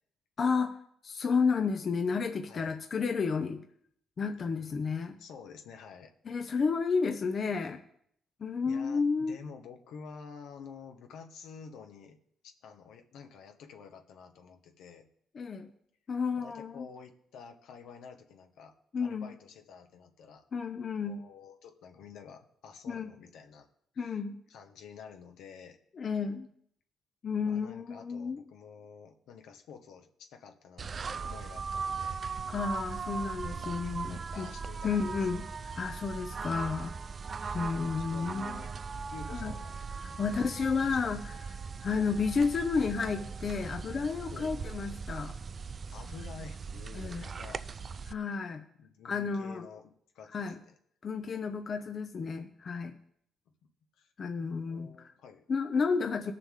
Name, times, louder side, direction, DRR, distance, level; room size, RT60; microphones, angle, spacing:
voice 1, 0.4-0.7 1.0-3.6 4.2-5.2 6.2-7.8 8.4-9.4 15.3-15.7 16.1-16.9 18.9-19.3 20.5-21.2 22.9-23.1 24.0-24.4 26.0-26.5 27.2-28.4 32.5-34.5 34.8-35.5 35.7-36.9 37.5-38.6 39.3-39.5 40.2-41.2 41.8-45.3 46.9-47.2 48.1-48.6 49.0-49.7 50.3-50.6 51.0-53.0 54.2-55.1 55.5-56.3, left 5 dB, 45° left, 6 dB, 0.9 m, -31 dB
voice 2, 2.4-2.8 5.2-6.1 6.4-6.6 8.6-12.2 12.6-15.1 16.4-20.4 21.0-23.7 23.9-24.2 24.5-25.8 27.4-32.2 33.4-33.7 34.1-35.2 37.3-37.6 38.1-38.7 39.1-39.8 40.3-41.2 44.3-44.6 45.9-48.1 48.8-50.7 54.0-54.1 54.7-55.4, left 6 dB, 80° left, 5 dB, 1.4 m, -50 dB
sound 1, 30.8-48.1, right 5 dB, 40° right, 0.4 m, -39 dB
19.5 x 6.8 x 3.8 m, 0.68 s
cardioid pair, 90°, 0 cm